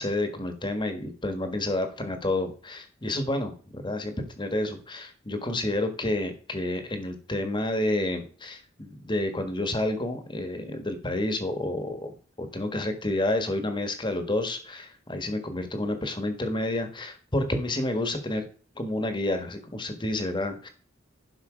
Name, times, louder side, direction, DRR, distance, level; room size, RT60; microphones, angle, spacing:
voice 1, 0.0-18.4 18.7-20.7, left 1 dB, 25° left, 7 dB, 1.4 m, -29 dB
11.0 x 5.7 x 5.0 m, 0.41 s
head